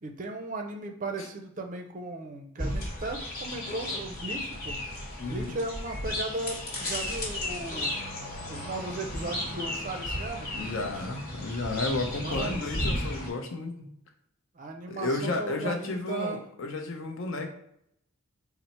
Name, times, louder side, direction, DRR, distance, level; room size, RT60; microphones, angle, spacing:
voice 1, 0.0-4.8 5.2-7.9 8.5-11.1 12.2-12.7 14.5-16.4, right 2 dB, 35° right, 4 dB, 0.4 m, -36 dB
sound 1, 2.6-13.3, left 1 dB, 45° left, 1.1 m, -34 dB
voice 2, 5.2-5.5 10.5-13.9 14.9-17.5, left 2 dB, 65° left, 4 dB, 0.6 m, -32 dB
4.2 x 2.0 x 4.1 m, 0.73 s
head